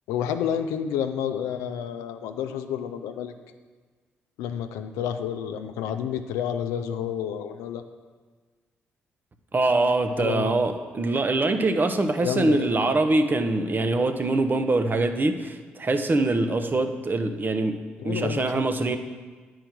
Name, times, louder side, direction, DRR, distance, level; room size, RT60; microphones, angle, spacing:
voice 1, 0.1-3.3 4.4-7.8 10.1-10.5 12.2-12.7 16.7-16.9 18.0-18.6, left 9 dB, 80° left, 8 dB, 0.5 m, -30 dB
voice 2, 9.5-17.8 18.0-19.0, right 2 dB, 35° right, 7 dB, 0.8 m, -23 dB
9.0 x 4.7 x 6.0 m, 1.4 s
hypercardioid pair, 45°, 5 cm